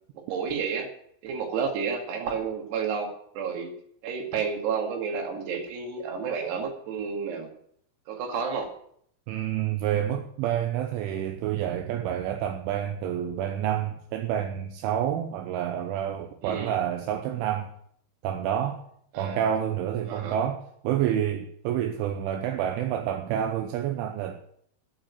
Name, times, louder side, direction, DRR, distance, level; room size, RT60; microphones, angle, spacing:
voice 1, 0.1-0.9 1.2-3.7 4.0-7.5 8.1-8.7 16.4-16.8 19.1-19.4 20.1-20.4, right 6 dB, 60° right, 3.9 m, -31 dB
voice 2, 9.3-17.7 18.2-18.8 19.2-24.4, right 10 dB, 80° right, 3.2 m, -28 dB
9.4 x 9.1 x 9.4 m
omnidirectional pair, 5.8 m